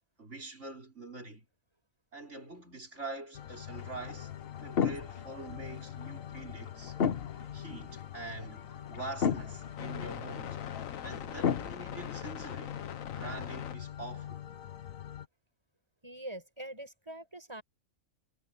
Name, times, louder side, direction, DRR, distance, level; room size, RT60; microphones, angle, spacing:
voice 1, 0.2-1.5 2.1-4.3 4.6-7.0 7.5-10.6 11.0-12.8 13.2-14.4, right 2 dB, 60° right, 5.5 m, -44 dB
sound 1, 3.3-15.3, left 10 dB, 85° left, 1.3 m, -42 dB
sound 2, 3.7-11.7, left 7 dB, 50° left, 1.0 m, -35 dB
voice 2, 16.0-17.6, right 1 dB, 20° right, 6.3 m, -43 dB
omnidirectional pair, 1.4 m